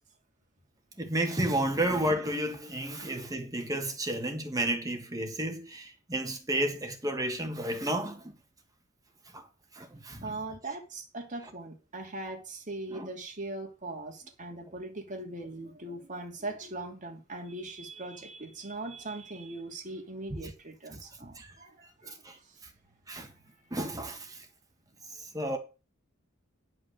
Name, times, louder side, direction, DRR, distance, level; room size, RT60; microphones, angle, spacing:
voice 1, 1.0-8.4 9.3-9.5 9.7-10.4 12.9-13.1 20.9-21.0 21.4-21.5 22.0-22.4 23.1-23.3 23.7-24.5 25.2-25.6, right 1 dB, 15° right, 1.8 m, -32 dB
voice 2, 10.2-22.1, right 2 dB, 40° right, 2.6 m, -40 dB
10.0 x 5.9 x 6.5 m
head